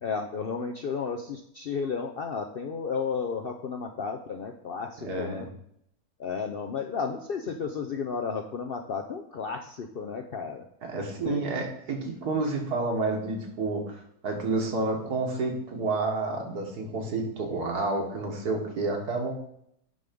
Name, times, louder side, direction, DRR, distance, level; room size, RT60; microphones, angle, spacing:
voice 1, 0.0-5.5 6.2-10.7 11.2-11.5, left 5 dB, 65° left, 4 dB, 0.6 m, -33 dB
voice 2, 5.0-5.5 10.8-19.3, right 3 dB, 80° right, 1 dB, 2.1 m, -30 dB
10.5 x 3.5 x 5.2 m, 0.73 s
omnidirectional pair, 1.6 m